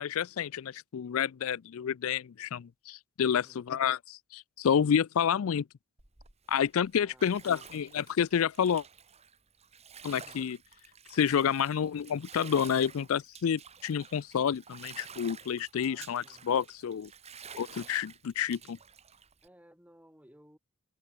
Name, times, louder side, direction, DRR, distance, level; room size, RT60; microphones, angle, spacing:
voice 1, 0.0-5.6 6.5-8.8 10.0-10.6 11.1-17.1 17.6-18.8, left 8 dB, 70° left, 0.4 m, -29 dB
voice 2, 3.3-3.7 7.0-7.6 10.1-10.5 15.8-16.5 19.4-20.6, equal, 5° right, 6.1 m, -59 dB
Bathtub (filling or washing), 6.0-19.5, right 6 dB, 30° right, 2.9 m, -51 dB
open air
head